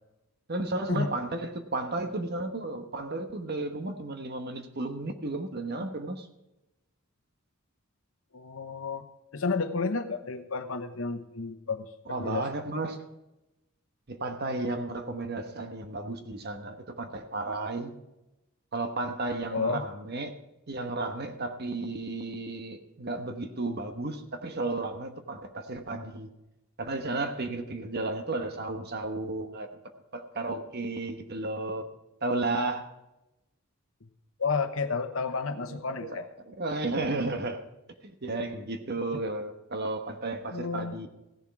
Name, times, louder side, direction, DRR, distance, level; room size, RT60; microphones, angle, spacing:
voice 1, 0.5-6.3 12.1-13.0 14.1-17.9 18.7-20.3 20.7-26.3 26.8-29.7 30.1-31.8 32.2-32.9 35.7-37.6 38.0-41.1, right 2 dB, 50° right, 1.2 m, -33 dB
voice 2, 8.3-12.5 19.5-19.9 34.0-34.1 34.4-36.3 40.5-41.1, left 4 dB, 65° left, 1.0 m, -31 dB
15.5 x 7.3 x 4.8 m
head